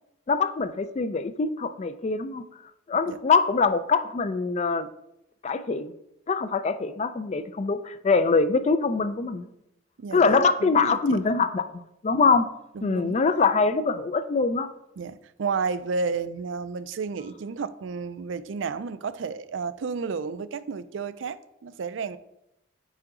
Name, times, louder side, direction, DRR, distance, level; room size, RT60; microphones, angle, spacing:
voice 1, 0.3-2.4 2.9-4.9 5.4-5.9 6.3-9.5 10.1-12.5 12.8-14.7, left 4 dB, 35° left, 0.3 m, -23 dB
voice 2, 10.0-11.2 12.7-13.2 15.0-22.2, right 5 dB, 75° right, 0.4 m, -32 dB
9.2 x 3.8 x 3.7 m
head